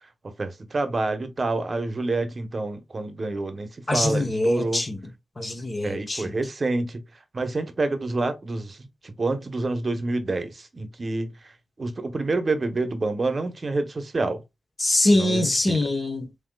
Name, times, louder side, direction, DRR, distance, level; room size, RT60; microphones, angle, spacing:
voice 1, 0.4-4.8 5.8-7.0 7.3-11.3 11.8-14.4 15.1-15.8, right 2 dB, 40° right, 1.0 m, -28 dB
voice 2, 3.9-5.0 5.4-6.3 14.8-16.3, left 1 dB, 30° left, 1.1 m, -23 dB
7.8 x 2.9 x 2.3 m
wide cardioid pair, 90°, 0 cm